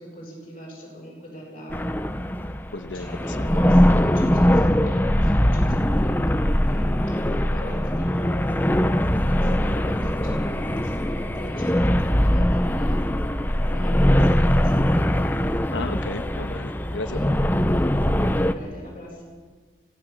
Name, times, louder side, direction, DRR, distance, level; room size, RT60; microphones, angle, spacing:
voice 1, 0.0-1.8 2.9-6.4 6.7-6.9 7.2-13.0 13.7-15.3 17.1-17.3 18.4-19.2, equal, 30° left, -3 dB, 7.3 m, -41 dB
sound 1, 1.7-18.5, equal, 10° left, 0.6 m, -21 dB
voice 2, 2.7-3.1 15.7-17.2, left 2 dB, 85° left, 6 dB, 1.3 m, -33 dB
25.5 x 16.5 x 7.3 m, 1.5 s
head